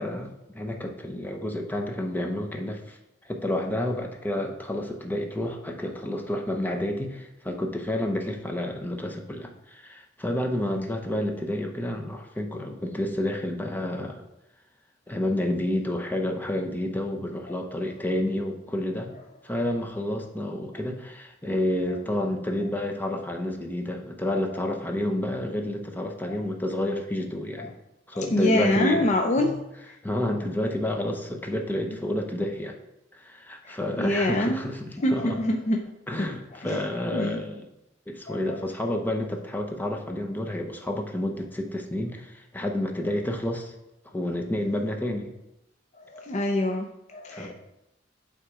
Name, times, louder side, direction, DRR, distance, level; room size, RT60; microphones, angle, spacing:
voice 1, 0.0-3.0 3.2-14.2 15.1-19.1 19.4-27.7 28.1-29.1 29.4-29.5 30.0-32.8 33.1-35.4 36.1-37.7 38.1-43.7 44.0-45.3 47.3-47.5, left 1 dB, 10° left, 2 dB, 0.8 m, -30 dB
voice 2, 28.1-29.6 31.9-32.0 33.6-34.7 35.0-35.8 36.2-36.3 36.5-36.8 37.1-37.4 38.3-38.4 46.1-47.5, left 1 dB, 40° left, 2 dB, 0.5 m, -26 dB
8.2 x 3.7 x 4.8 m, 0.87 s
head